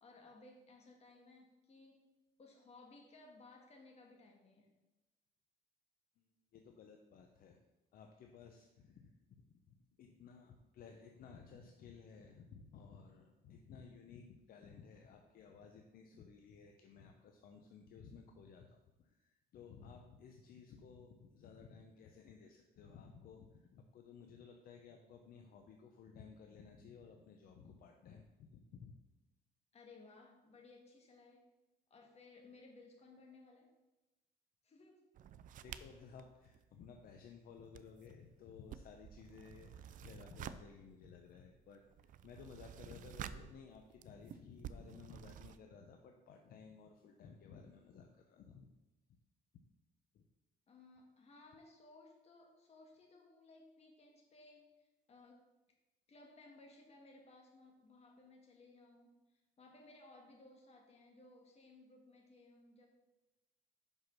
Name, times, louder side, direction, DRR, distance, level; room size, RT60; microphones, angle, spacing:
voice 1, 0.0-2.0 2.4-4.8 29.7-31.4 31.9-33.7 34.6-35.1 35.6-35.7 50.7-55.5 56.1-59.1 59.6-62.9, left 2 dB, 40° left, 1 dB, 1.8 m, -60 dB
voice 2, 6.2-7.6 7.9-29.0 35.6-48.7 49.1-49.2 50.1-50.2, left 6 dB, 60° left, 3 dB, 0.7 m, -57 dB
sound 1, 35.1-37.3 37.6-45.6, right 9 dB, 50° right, 0.4 m, -52 dB
5.8 x 5.5 x 5.9 m, 1.1 s
cardioid pair, 110°, 17 cm